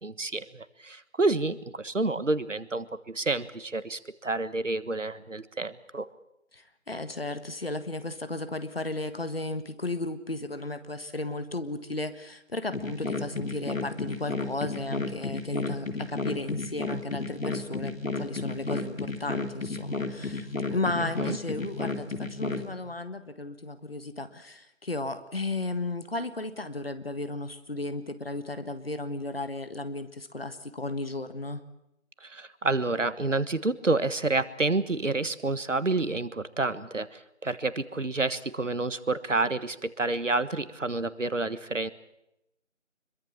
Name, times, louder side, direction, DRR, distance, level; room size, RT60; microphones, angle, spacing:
voice 1, 0.0-6.1 21.0-21.4 32.2-41.9, right 3 dB, 65° right, 14 dB, 1.5 m, -29 dB
voice 2, 6.5-31.6, left 2 dB, 45° left, 10 dB, 1.6 m, -34 dB
sound 1, 12.7-22.7, left 3 dB, 80° left, 3.1 m, -33 dB
25.0 x 22.5 x 7.3 m, 0.83 s
figure-of-eight pair, 170°, 40 cm